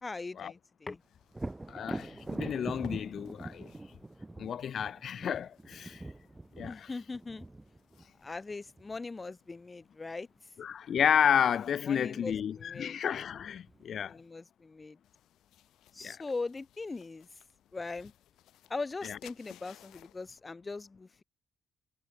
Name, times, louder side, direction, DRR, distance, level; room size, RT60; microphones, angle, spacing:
voice 1, 0.0-1.0 6.7-7.5 8.2-10.3 11.9-13.0 14.1-15.0 15.9-17.4 17.7-18.1 18.7-21.2, left 3 dB, 25° left, 2.1 m, -40 dB
sound 1, 1.0-20.4, left 13 dB, 85° left, 5.2 m, -63 dB
Thunder, 1.3-9.0 12.6-12.7 13.2-14.1, right 2 dB, 15° right, 2.1 m, -43 dB
voice 2, 1.7-3.7 4.4-6.0 6.6-6.9 10.6-14.2 16.0-16.2 19.0-19.2, left 8 dB, 60° left, 1.2 m, -31 dB
cardioid pair, 90°, 0 cm